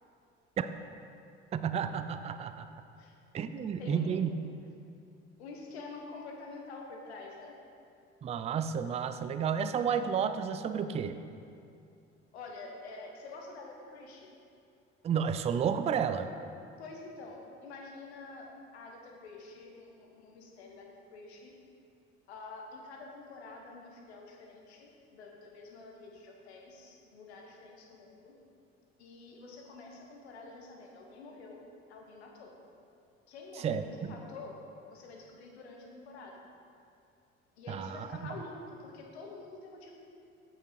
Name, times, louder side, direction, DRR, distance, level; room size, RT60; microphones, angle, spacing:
voice 1, 1.5-2.7 3.3-4.3 8.2-11.2 15.0-16.3 33.6-34.2 37.7-38.4, right 7 dB, 20° right, 10 dB, 0.4 m, -31 dB
voice 2, 3.8-4.3 5.4-7.6 12.3-14.3 16.8-21.5 22.3-28.3 29.0-31.6 31.9-32.5 33.3-34.5 34.9-36.3 37.6-40.0, left 3 dB, 75° left, 1 dB, 1.1 m, -47 dB
8.3 x 5.5 x 4.7 m, 2.5 s
figure-of-eight pair, 55°, 33 cm